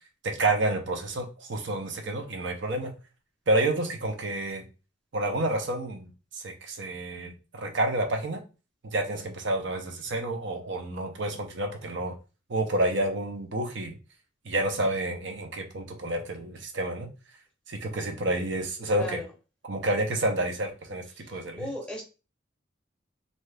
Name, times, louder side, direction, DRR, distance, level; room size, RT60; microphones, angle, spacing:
voice 1, 0.2-2.9 3.5-4.7 5.1-8.4 8.8-12.1 12.5-13.9 14.4-17.1 17.7-19.2 19.6-21.7, right 1 dB, 65° right, 4 dB, 0.6 m, -29 dB
voice 2, 18.9-19.3 21.0-22.0, left 1 dB, 5° left, -1 dB, 0.7 m, -37 dB
2.7 x 2.3 x 3.2 m, 0.31 s
head